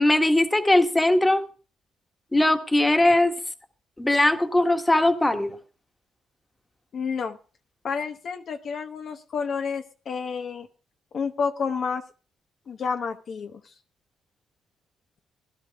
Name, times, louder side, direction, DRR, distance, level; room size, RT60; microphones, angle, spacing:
voice 1, 0.0-1.4 2.3-3.3 4.0-5.6, left 1 dB, 15° left, 6 dB, 1.5 m, -20 dB
voice 2, 6.9-7.4 7.8-10.7 11.1-12.0 12.7-13.6, left 5 dB, 55° left, 6 dB, 0.9 m, -30 dB
16.5 x 11.5 x 3.6 m, 0.37 s
cardioid pair, 90°, 0 cm